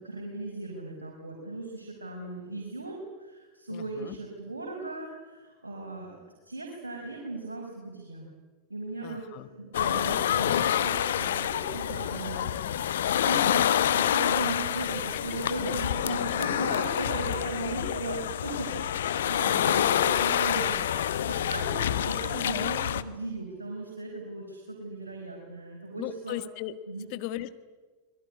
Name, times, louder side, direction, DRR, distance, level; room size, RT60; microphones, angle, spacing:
voice 1, 0.0-6.2 6.5-8.3 8.7-13.0 13.3-26.4 26.9-27.1, right 2 dB, 80° right, 0 dB, 5.3 m, -37 dB
voice 2, 3.7-4.1 9.0-9.5 12.3-12.8 17.8-18.0 18.7-18.8 22.3-22.7 26.0-26.7 27.0-27.5, left 14 dB, 45° left, 12 dB, 1.7 m, -38 dB
sound 1, 9.7-23.0, left 10 dB, 60° left, 1.2 m, -27 dB
26.5 x 21.5 x 9.8 m, 1.3 s
figure-of-eight pair, 90°, 0 cm